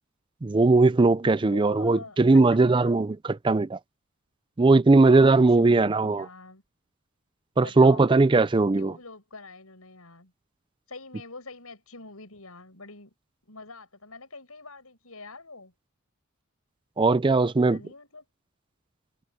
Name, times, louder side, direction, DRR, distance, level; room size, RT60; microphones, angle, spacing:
voice 1, 0.4-3.8 4.6-6.3 7.6-8.9 17.0-17.8, right 3 dB, 25° right, 0.4 m, -19 dB
voice 2, 1.4-3.0 4.9-6.6 7.6-8.1 8.8-10.3 10.9-13.1 13.5-15.7 17.7-18.2, left 3 dB, 90° left, 7.3 m, -45 dB
head